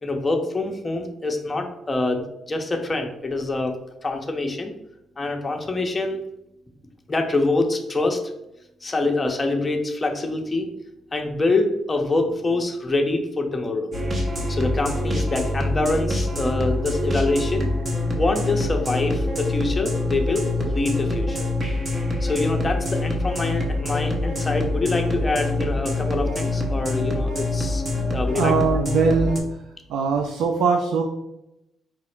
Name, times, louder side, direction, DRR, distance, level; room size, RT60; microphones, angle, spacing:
voice 1, 0.0-4.7 5.2-6.2 7.1-8.2 8.8-10.7 11.1-13.9 14.5-17.7 18.1-21.5 22.2-27.8 28.1-28.5, left 2 dB, 20° left, 3 dB, 0.7 m, -25 dB
sound 1, 13.9-29.4, left 2 dB, 35° right, 0.9 m, -25 dB
voice 2, 28.3-29.4 29.9-31.0, right 5 dB, 85° right, 3 dB, 0.4 m, -21 dB
4.8 x 2.0 x 4.4 m, 0.86 s
cardioid pair, 90°, 0 cm